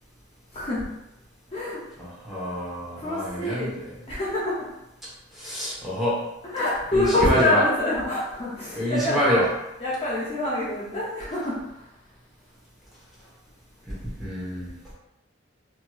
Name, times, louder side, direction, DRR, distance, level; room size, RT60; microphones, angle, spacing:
voice 1, 0.5-0.8 1.5-1.8 3.0-3.7 4.1-4.6 6.5-9.2 9.8-11.6, left 1 dB, 30° left, -7 dB, 0.6 m, -25 dB
voice 2, 2.0-3.8 5.3-6.2 6.9-7.6 8.7-9.5 13.9-14.7, equal, ahead, -9 dB, 1.0 m, -27 dB
3.0 x 2.7 x 2.3 m, 0.90 s
head